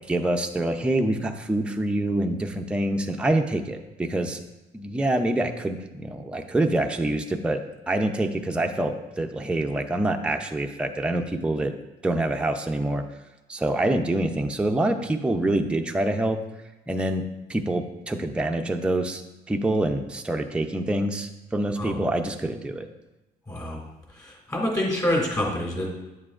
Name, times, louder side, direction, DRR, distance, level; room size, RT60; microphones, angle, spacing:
voice 1, 0.1-4.4 4.7-7.6 7.9-11.7 12.0-13.0 13.5-16.4 16.9-17.2 17.5-19.2 19.5-22.9, right 1 dB, 5° right, 4 dB, 0.5 m, -26 dB
voice 2, 23.5-23.8 24.2-25.9, left 1 dB, 20° left, -1 dB, 2.4 m, -26 dB
8.9 x 7.4 x 2.4 m, 1.0 s
cardioid pair, 110°, 17 cm